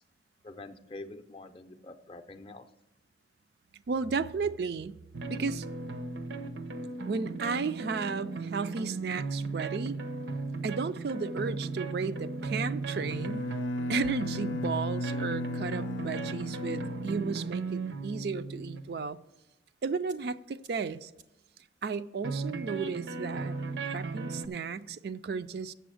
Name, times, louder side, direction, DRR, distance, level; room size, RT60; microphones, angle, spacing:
voice 1, 0.4-2.7, left 2 dB, 30° left, 0.5 m, -46 dB
voice 2, 3.9-4.9 5.3-5.7 7.1-10.0 10.6-13.4 13.9-19.2 19.8-21.1 21.8-23.5 23.9-25.7, right 5 dB, 60° right, 0.4 m, -34 dB
sound 1, 5.1-18.8 20.1-20.2 20.6-20.7 21.2-21.3 22.2-24.5, right 3 dB, 80° right, 0.8 m, -36 dB
Bowed string instrument, 12.9-17.7, left 2 dB, 85° left, 0.4 m, -36 dB
8.0 x 6.9 x 6.3 m
head